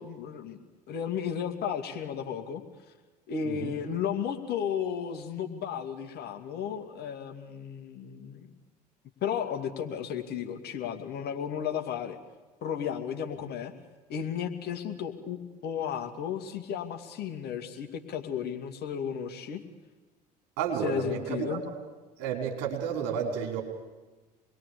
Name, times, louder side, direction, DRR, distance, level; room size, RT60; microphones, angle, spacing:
voice 1, 0.0-2.6 3.3-8.5 9.2-12.2 12.6-13.7 14.1-19.6 20.8-21.6, left 8 dB, 50° left, 5 dB, 2.5 m, -34 dB
voice 2, 3.4-3.8 20.6-21.8 22.2-23.6, right 7 dB, 65° right, 2 dB, 5.0 m, -32 dB
27.0 x 21.5 x 8.6 m, 1.2 s
figure-of-eight pair, 60°, 20 cm